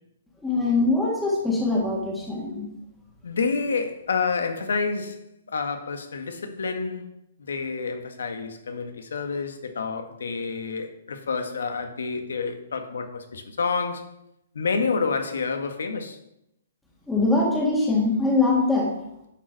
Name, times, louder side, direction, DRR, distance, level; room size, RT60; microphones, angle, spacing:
voice 1, 0.4-2.7 17.1-18.9, left 3 dB, 5° left, 1.8 m, -22 dB
voice 2, 3.2-5.2 5.5-14.1 14.5-16.2, left 4 dB, 85° left, 1.4 m, -29 dB
10.5 x 5.0 x 4.6 m
hypercardioid pair, 150°, 0 cm